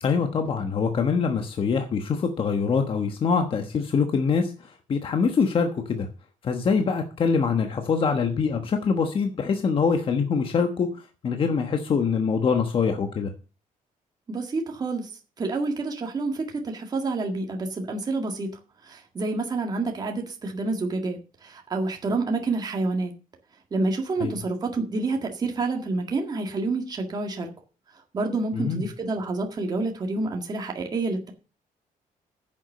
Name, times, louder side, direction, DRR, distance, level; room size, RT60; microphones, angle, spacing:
voice 1, 0.0-6.1 6.4-10.9 11.2-13.3 24.2-24.4 28.5-28.8, left 5 dB, 35° left, 6 dB, 1.2 m, -24 dB
voice 2, 14.3-15.1 15.4-18.5 18.8-23.1 23.7-27.5 28.1-31.3, right 3 dB, 25° right, 2 dB, 1.9 m, -28 dB
10.0 x 7.3 x 6.6 m, 0.34 s
cardioid pair, 180°, 15 cm